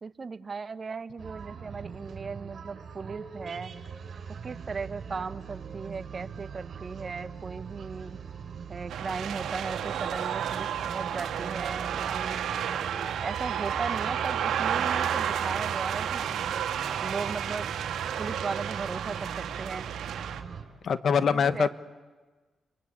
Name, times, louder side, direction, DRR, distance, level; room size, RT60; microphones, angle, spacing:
voice 1, 0.0-3.7 4.4-8.2 8.7-12.4 12.9-16.5 17.0-17.8 18.2-19.8 21.3-21.7, right 4 dB, 40° right, 12 dB, 1.2 m, -37 dB
sound 1, 1.2-20.6, right 6 dB, 60° right, 5.6 m, -41 dB
sound 2, 8.9-20.4, right 9 dB, 80° right, 1.7 m, -31 dB
voice 2, 20.8-21.7, left 6 dB, 60° left, 13 dB, 1.3 m, -24 dB
29.5 x 23.5 x 8.6 m, 1.3 s
cardioid pair, 70°, 0 cm